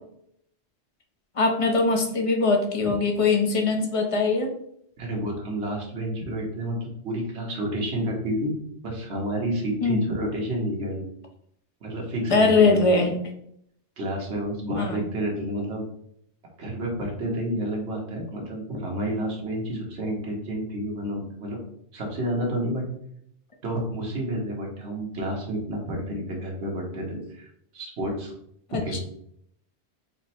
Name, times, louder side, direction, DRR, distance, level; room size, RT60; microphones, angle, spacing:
voice 1, 1.4-4.5 9.8-10.0 12.3-13.1 14.8-15.0 28.7-29.0, left 3 dB, 40° left, 3 dB, 0.5 m, -21 dB
voice 2, 5.0-8.5 8.8-11.0 11.8-12.8 14.0-15.8 16.6-21.6 21.9-22.8 23.6-27.5 27.7-28.3 28.8-29.0, right 1 dB, 75° right, -1 dB, 1.4 m, -30 dB
4.3 x 2.0 x 4.3 m, 0.70 s
omnidirectional pair, 1.2 m